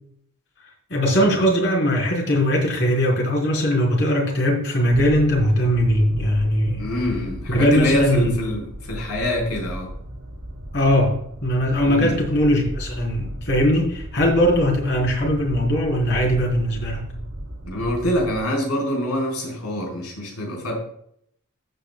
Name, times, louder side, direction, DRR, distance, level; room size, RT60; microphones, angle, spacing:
voice 1, 0.9-6.9 7.5-8.3 10.7-17.0, equal, 55° left, -2 dB, 4.1 m, -20 dB
sound 1, 4.9-18.4, equal, 80° right, 2.6 m, -35 dB
voice 2, 6.8-9.9 11.9-12.2 17.6-20.7, left 1 dB, 85° left, -1 dB, 4.5 m, -25 dB
15.0 x 8.8 x 2.3 m, 0.68 s
head